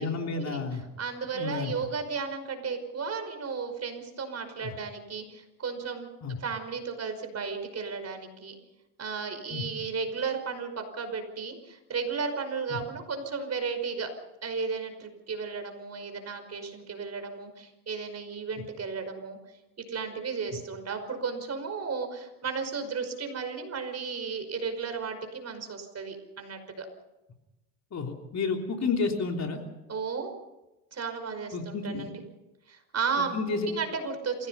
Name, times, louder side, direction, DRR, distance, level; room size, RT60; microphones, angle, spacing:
voice 1, 0.0-0.8 1.3-1.7 4.6-4.7 6.2-6.4 9.5-9.7 12.7-12.8 27.9-29.6 31.5-32.1 33.2-33.7, left 4 dB, 35° left, 3 dB, 3.5 m, -31 dB
voice 2, 1.0-6.1 6.4-8.6 9.0-14.1 14.4-19.4 19.9-26.9 29.9-30.3 30.9-32.2 32.7-33.4 33.7-34.5, right 5 dB, 30° right, 7 dB, 5.4 m, -34 dB
28.0 x 17.0 x 5.6 m, 0.97 s
supercardioid pair, 95°, 48 cm